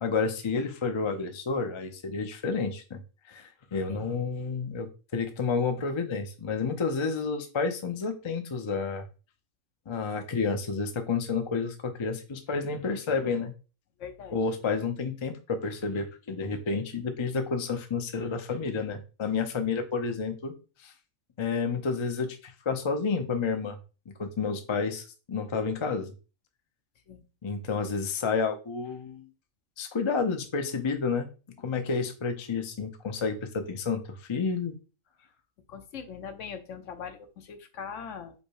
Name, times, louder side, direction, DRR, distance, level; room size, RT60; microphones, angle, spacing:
voice 1, 0.0-3.0 3.3-9.1 9.9-13.5 14.3-20.5 20.8-20.9 21.4-23.8 24.2-26.1 27.4-29.3 29.8-31.3 31.6-34.7, left 5 dB, 45° left, 6 dB, 0.3 m, -30 dB
voice 2, 14.0-14.4 27.1-27.2 35.7-38.3, left 7 dB, 65° left, 7 dB, 1.0 m, -41 dB
5.2 x 2.2 x 4.7 m, 0.32 s
omnidirectional pair, 1.5 m